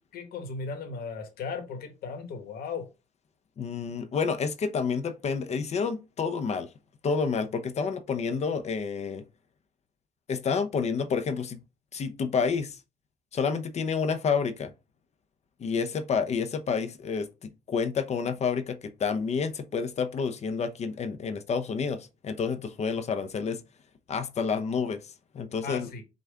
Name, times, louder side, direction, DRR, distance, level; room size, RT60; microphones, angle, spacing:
voice 1, 0.1-2.9 25.6-26.0, left 4 dB, 65° left, 1.4 m, -36 dB
voice 2, 3.6-6.7 7.0-9.2 10.3-11.6 11.9-12.8 13.3-14.7 15.6-23.6 24.1-25.0 25.3-25.9, left 5 dB, 40° left, 0.7 m, -29 dB
5.7 x 2.5 x 3.6 m
cardioid pair, 110°, 17 cm